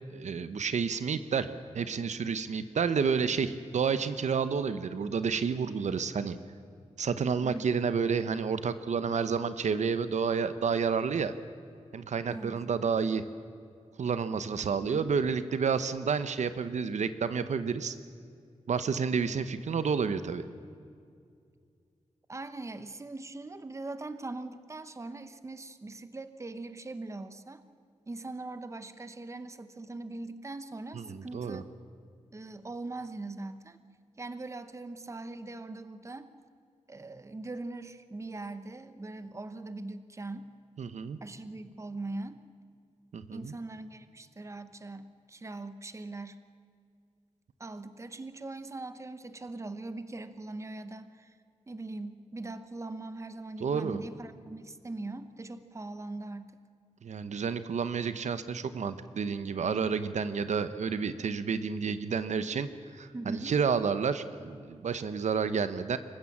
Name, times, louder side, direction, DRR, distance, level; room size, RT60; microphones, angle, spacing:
voice 1, 0.1-6.4 7.0-11.3 11.9-13.2 14.0-18.0 18.7-20.4 30.9-31.6 40.8-41.2 43.1-43.5 53.6-54.0 57.0-62.7 62.9-66.0, right 6 dB, 80° right, 12 dB, 0.9 m, -30 dB
voice 2, 7.4-7.7 12.3-12.6 14.9-15.1 22.3-27.6 28.1-31.6 32.3-33.8 34.2-36.3 36.9-40.5 41.2-42.4 43.3-46.4 47.6-51.4 51.7-56.5 63.1-63.5, right 2 dB, 25° right, 11 dB, 0.9 m, -41 dB
26.0 x 15.0 x 7.3 m, 2.3 s
wide cardioid pair, 110°, 12 cm